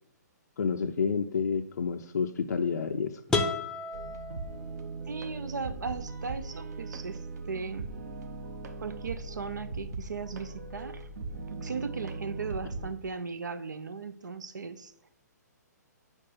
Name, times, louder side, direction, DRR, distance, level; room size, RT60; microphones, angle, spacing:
voice 1, 0.6-3.1, left 6 dB, 75° left, 3 dB, 0.5 m, -29 dB
sound 1, 3.3-5.2, left 3 dB, 5° left, 0.6 m, -32 dB
sound 2, 3.9-12.9, right 3 dB, 65° right, 1.0 m, -39 dB
voice 2, 5.1-8.0 8.8-11.1 11.6-14.9, right 5 dB, 80° right, 13 dB, 0.6 m, -37 dB
5.3 x 5.1 x 5.5 m, 0.73 s
figure-of-eight pair, 130°, 10 cm